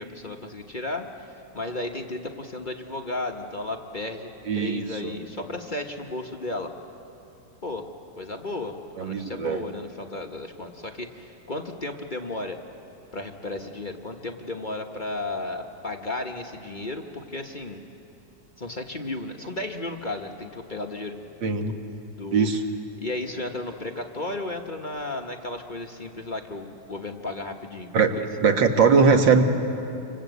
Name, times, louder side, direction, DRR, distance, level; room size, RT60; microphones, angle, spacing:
voice 1, 0.0-6.7 7.6-7.9 8.2-12.6 13.1-17.8 18.6-21.2 21.7-21.8 22.2-22.5 23.0-28.3, left 2 dB, 30° left, 2 dB, 1.2 m, -34 dB
voice 2, 4.5-5.1 9.0-9.6 21.4-21.8 22.3-22.6 27.9-28.1 28.4-29.4, right 5 dB, 85° right, 5 dB, 2.3 m, -20 dB
27.5 x 26.0 x 8.2 m, 2.8 s
omnidirectional pair, 2.0 m